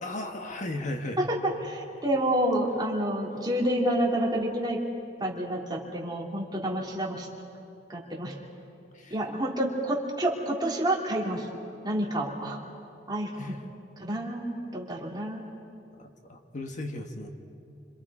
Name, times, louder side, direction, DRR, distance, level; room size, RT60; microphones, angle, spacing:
voice 1, 0.0-1.2 8.9-9.1 13.4-13.5 16.3-17.3, left 1 dB, 45° left, 4 dB, 1.4 m, -35 dB
voice 2, 1.2-4.8 5.2-7.3 7.9-8.3 9.1-11.5 11.8-12.6 13.1-13.5 14.0-15.4, right 1 dB, 25° right, -2 dB, 2.9 m, -29 dB
28.0 x 26.5 x 4.9 m, 2.7 s
head